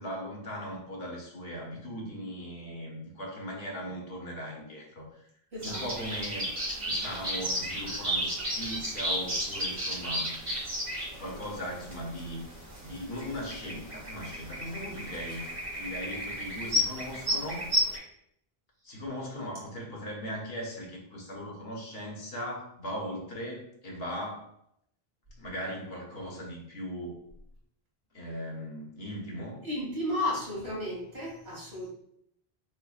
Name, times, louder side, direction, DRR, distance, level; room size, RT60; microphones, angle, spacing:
voice 1, 0.0-5.3 5.6-6.5 6.8-10.3 11.1-12.4 12.8-15.5 15.7-17.7 18.8-24.5 25.4-27.2 28.1-29.6, equal, 70° left, -1 dB, 1.1 m, -38 dB
voice 2, 5.5-5.8 29.6-31.9, left 1 dB, 80° right, -6 dB, 2.0 m, -33 dB
sound 1, 5.6-18.0, equal, 45° right, 1.3 m, -33 dB
5.5 x 2.1 x 2.4 m, 0.72 s
omnidirectional pair, 1.0 m